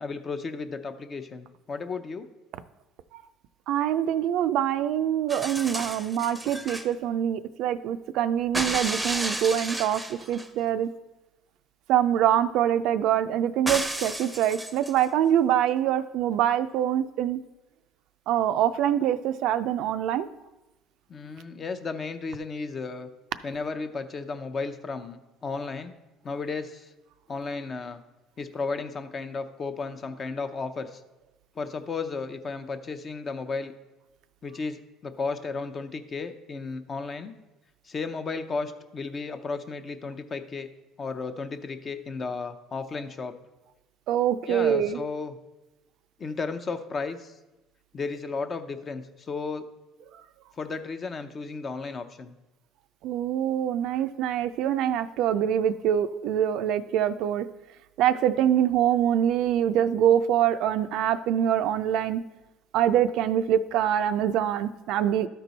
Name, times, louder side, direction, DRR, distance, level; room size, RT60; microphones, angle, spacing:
voice 1, 0.0-2.3 21.1-23.1 23.4-25.9 26.2-26.9 27.3-28.0 28.4-31.0 31.6-33.7 34.4-37.3 37.8-40.7 41.0-43.3 44.5-45.4 46.2-47.3 47.9-49.7 50.6-52.3, left 4 dB, 35° left, 9 dB, 0.6 m, -34 dB
voice 2, 3.7-10.9 11.9-17.4 18.3-20.3 44.1-45.0 53.0-57.5 58.0-62.2 62.7-65.3, right 10 dB, 70° right, 11 dB, 0.4 m, -24 dB
sound 1, 5.3-6.9 8.5-10.5 13.7-15.1 16.3-16.4, right 1 dB, 5° right, 0.7 m, -32 dB
12.5 x 4.5 x 4.0 m, 1.0 s
cardioid pair, 110°, 0 cm